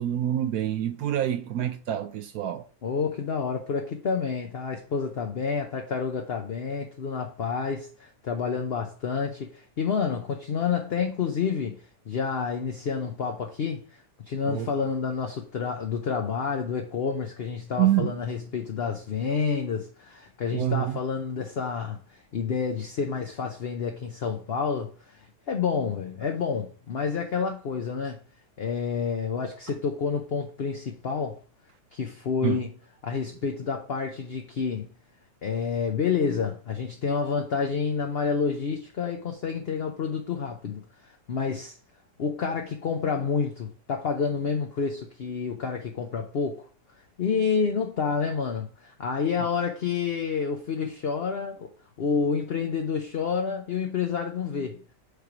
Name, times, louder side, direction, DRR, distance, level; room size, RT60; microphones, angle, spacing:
voice 1, 0.0-2.7 14.4-14.7 17.8-18.2 20.5-21.0 32.4-32.6, right 12 dB, 70° right, 1.0 m, -26 dB
voice 2, 2.8-11.8 12.1-13.8 14.3-22.0 22.3-28.2 28.6-31.4 31.9-32.7 33.0-34.9 35.4-40.8 41.3-41.8 42.2-46.7 47.2-51.7 52.0-54.8, left 5 dB, 50° left, 0.8 m, -29 dB
6.6 x 3.3 x 5.9 m
omnidirectional pair, 1.8 m